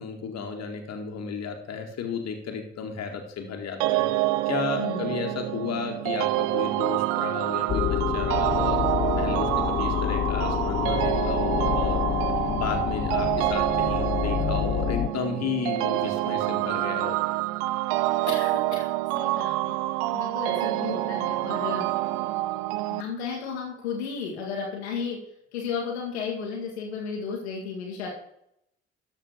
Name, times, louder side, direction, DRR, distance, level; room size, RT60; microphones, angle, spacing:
voice 1, 0.0-8.8 9.2-12.0 12.5-17.2, left 5 dB, 50° left, 4 dB, 2.1 m, -33 dB
sound 1, 3.8-23.0, right 16 dB, 70° right, 0.5 m, -27 dB
voice 2, 4.8-5.1 18.3-18.9 19.1-19.7 20.1-21.9 22.9-25.2 25.5-28.1, left 5 dB, 80° left, -1 dB, 1.7 m, -33 dB
sound 2, 7.7-15.1, left 10 dB, 30° left, 0.4 m, -27 dB
13.0 x 4.4 x 6.7 m, 0.75 s
figure-of-eight pair, 45°, 32 cm